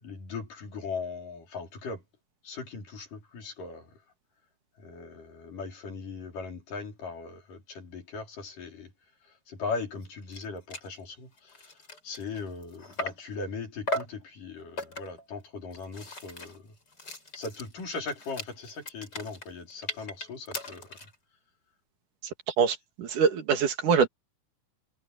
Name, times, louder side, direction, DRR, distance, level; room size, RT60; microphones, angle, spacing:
voice 1, 0.0-2.0 2.4-3.9 4.8-8.9 9.5-11.6 12.0-16.6 17.3-20.9, left 4 dB, 80° left, 6.2 m, -39 dB
sound 1, 10.0-10.1 10.3-10.4 10.7-10.9 11.4-13.3 13.9-14.2 14.8-15.2 15.7-21.1, left 1 dB, 30° left, 5.7 m, -38 dB
voice 2, 22.6-24.1, right 6 dB, 75° right, 3.5 m, -24 dB
omnidirectional pair, 3.7 m